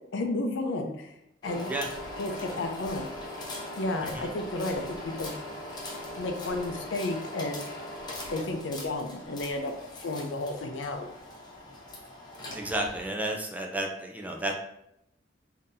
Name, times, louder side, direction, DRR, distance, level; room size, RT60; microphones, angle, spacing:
voice 1, 0.1-1.1 1.4-1.7 2.2-3.1 3.8-5.3 6.2-7.7 8.3-9.7 10.0-11.1, left 2 dB, 70° left, 4 dB, 0.5 m, -32 dB
sound 1, 1.4-13.1, left 1 dB, 20° left, 0.7 m, -40 dB
voice 2, 12.5-14.5, right 1 dB, 10° right, 1 dB, 0.3 m, -32 dB
3.7 x 2.7 x 2.6 m, 0.80 s
head